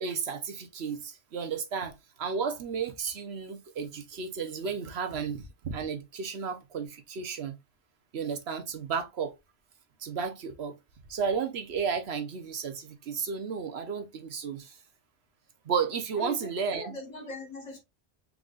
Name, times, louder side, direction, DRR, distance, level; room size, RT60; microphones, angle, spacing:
voice 1, 0.0-7.5 8.1-9.3 10.0-10.7 11.1-14.8 15.7-17.0, right 6 dB, 65° right, 1.0 m, -33 dB
voice 2, 16.2-17.8, left 2 dB, 40° left, 1.4 m, -41 dB
4.7 x 3.8 x 2.4 m
omnidirectional pair, 1.2 m